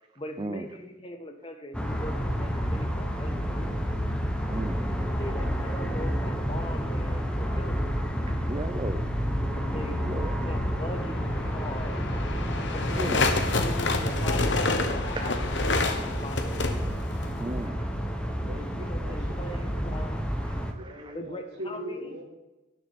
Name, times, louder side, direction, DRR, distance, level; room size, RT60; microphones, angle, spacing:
voice 1, 0.2-3.8 4.9-7.8 9.5-12.0 12.7-16.8 18.7-20.2 21.1-22.1, left 1 dB, 30° left, 5 dB, 1.1 m, -40 dB
sound 1, 1.7-20.7, equal, 5° left, 1.0 m, -30 dB
voice 2, 4.5-4.8 8.3-9.1 10.1-10.4 12.9-13.3 15.2-15.3 17.4-17.9 20.4-21.1, right 2 dB, 25° right, 8 dB, 0.5 m, -35 dB
sound 2, 10.8-17.7, left 3 dB, 70° left, 1.2 m, -29 dB
voice 3, 18.2-19.6 20.7-22.2, equal, 60° right, 0 dB, 2.7 m, -41 dB
17.5 x 6.6 x 4.2 m, 1.0 s
head